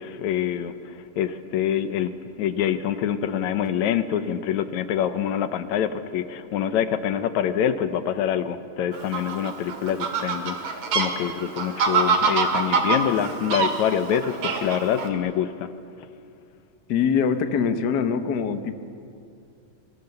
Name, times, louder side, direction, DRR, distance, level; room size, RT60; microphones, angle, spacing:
voice 1, 0.0-2.1 2.4-15.7, left 9 dB, 75° left, 10 dB, 2.3 m, -26 dB
Fowl, 8.9-15.1, right 4 dB, 80° right, 3.5 m, -25 dB
voice 2, 16.9-18.8, left 6 dB, 55° left, 8 dB, 1.2 m, -23 dB
29.0 x 21.5 x 6.8 m, 2.4 s
omnidirectional pair, 3.3 m